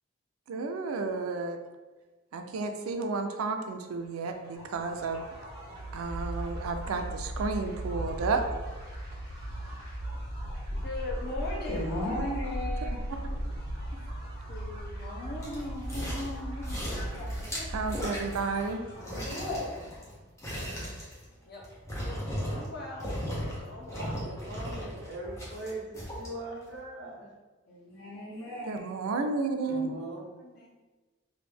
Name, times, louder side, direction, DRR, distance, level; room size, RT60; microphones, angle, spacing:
voice 1, 0.5-1.6 2.3-5.2 5.9-8.4 13.9-14.1 17.7-18.8 28.6-29.9, right 4 dB, 90° right, 6 dB, 0.4 m, -32 dB
sound 1, 4.3-20.0, right 1 dB, 20° right, 1.2 m, -37 dB
voice 2, 8.9-10.0 11.7-12.9 16.9-17.6 18.9-19.8 27.7-28.8, left 1 dB, 65° left, -8 dB, 1.4 m, -37 dB
voice 3, 10.8-12.1 14.5-16.8 21.4-21.7 22.0-23.1 23.6-24.2 30.4-30.7, left 2 dB, 50° left, -4 dB, 0.7 m, -39 dB
sound 2, 15.4-16.4 16.6-18.7 19.0-22.7 23.0-23.6 23.9-26.3 26.7-26.8, equal, 15° left, 0.7 m, -37 dB
voice 4, 24.2-27.3 29.7-30.2, right 1 dB, 55° right, -4 dB, 0.8 m, -40 dB
3.1 x 2.5 x 3.4 m, 1.3 s
head